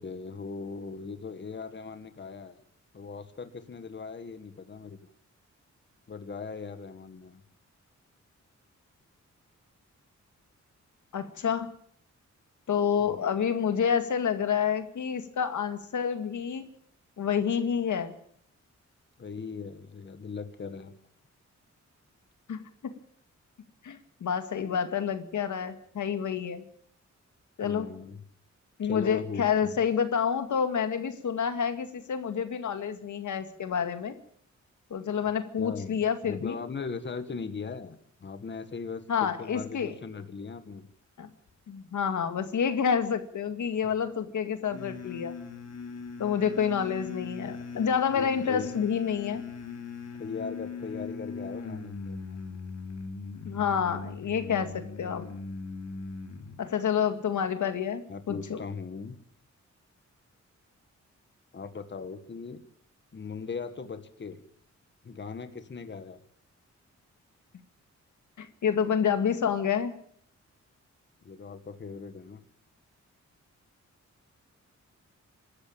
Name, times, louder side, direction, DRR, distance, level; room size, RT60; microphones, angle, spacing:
voice 1, 0.0-2.6 2.9-5.0 6.1-7.4 13.0-13.3 19.2-20.9 27.6-28.2 28.8-29.8 35.2-35.3 35.6-40.9 48.1-48.7 50.2-52.4 58.1-59.2 61.5-62.6 63.1-64.4 65.0-66.2 71.2-72.4, left 5 dB, 40° left, 10 dB, 1.6 m, -39 dB
voice 2, 11.1-11.7 12.7-16.6 17.2-18.1 22.5-22.9 23.8-26.6 27.6-27.9 28.8-34.2 34.9-36.6 39.1-39.9 41.2-41.3 41.7-45.3 46.2-49.4 53.4-55.3 56.6-58.6 68.4-69.9, left 7 dB, 85° left, 9 dB, 2.1 m, -28 dB
sound 1, 44.7-56.6, left 4 dB, 60° left, 3.1 m, -39 dB
25.0 x 13.5 x 8.8 m, 0.63 s
wide cardioid pair, 135°, 29 cm